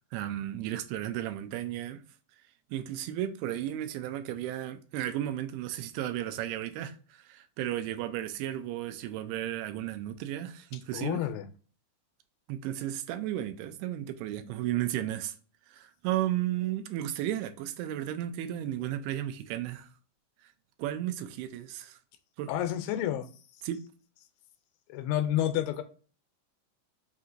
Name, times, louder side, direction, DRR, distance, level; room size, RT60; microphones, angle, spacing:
voice 1, 0.1-2.0 2.7-11.2 12.5-15.3 15.7-19.9 20.8-22.0 22.4-22.5 23.6-23.8, right 12 dB, 85° right, 2.5 m, -34 dB
voice 2, 10.9-11.5 22.5-23.3 24.9-25.8, left 11 dB, 80° left, 2.4 m, -29 dB
6.0 x 2.8 x 2.4 m
omnidirectional pair, 4.5 m